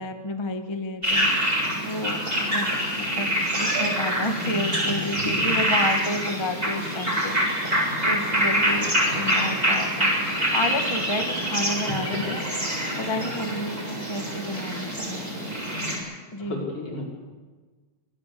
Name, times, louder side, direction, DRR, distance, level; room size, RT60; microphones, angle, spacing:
voice 1, 0.0-7.7 8.0-10.1 10.5-12.4 12.9-15.3 16.3-16.7, left 1 dB, 30° left, 7 dB, 0.5 m, -31 dB
sound 1, 1.0-15.9, equal, 15° right, 7.7 m, -25 dB
voice 2, 4.8-5.5 11.9-12.4 16.4-17.0, left 2 dB, 50° left, -1 dB, 6.4 m, -33 dB
26.0 x 19.0 x 8.5 m, 1.4 s
omnidirectional pair, 3.4 m